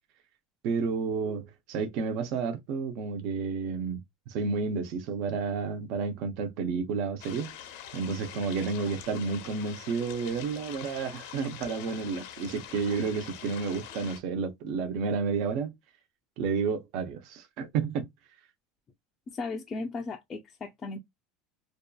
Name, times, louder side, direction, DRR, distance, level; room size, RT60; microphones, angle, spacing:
voice 1, 0.6-7.5 7.9-15.7 16.4-18.1, right 5 dB, 55° right, 0.5 m, -31 dB
sound 1, 7.2-14.2, left 10 dB, 80° left, 0.6 m, -44 dB
voice 2, 19.3-21.0, left 3 dB, 25° left, 0.4 m, -36 dB
2.6 x 2.3 x 2.2 m
supercardioid pair, 150°, 0 cm